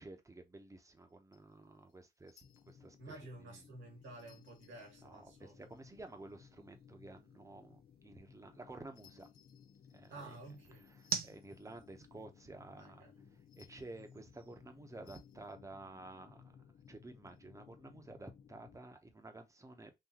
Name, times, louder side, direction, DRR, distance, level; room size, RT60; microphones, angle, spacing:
voice 1, 0.0-3.6 5.0-9.3 9.9-10.4 10.9-13.1 13.6-16.6 16.9-19.9, right 2 dB, 15° right, 0.9 m, -52 dB
sound 1, 1.0-2.9 4.0-6.3 8.9-12.0 13.4-14.2 15.0-15.6 16.8-17.4, left 8 dB, 75° left, 1.0 m, -69 dB
sound 2, 1.3-15.5, right 7 dB, 50° right, 0.6 m, -51 dB
sound 3, 2.4-18.8, left 7 dB, 40° left, 0.4 m, -61 dB
voice 2, 3.0-5.7 10.1-10.8 12.8-13.4, right 2 dB, 85° right, 2.1 m, -52 dB
4.0 x 2.6 x 2.9 m
cardioid pair, 90°, 20 cm